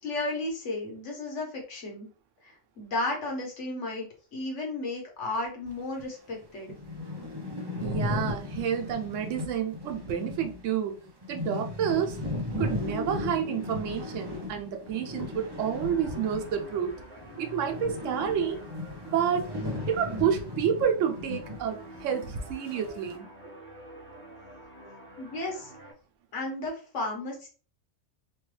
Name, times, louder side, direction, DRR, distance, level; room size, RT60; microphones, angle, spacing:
voice 1, 0.0-2.1 2.4-6.7 25.2-25.9 26.3-27.5, left 2 dB, 75° left, 1.4 m, -34 dB
sound 1, 6.0-6.1 6.4-6.5 6.7-16.9 17.2-21.7 21.9-22.0 22.7-23.1, left 2 dB, 30° right, 0.4 m, -36 dB
voice 2, 7.8-11.0 11.3-12.2 12.6-17.0 17.4-18.6 19.0-19.5 19.9-23.3, right 8 dB, 85° right, 1.0 m, -29 dB
sound 2, 14.9-25.9, right 1 dB, 10° left, 0.7 m, -49 dB
3.1 x 2.3 x 3.1 m
omnidirectional pair, 1.3 m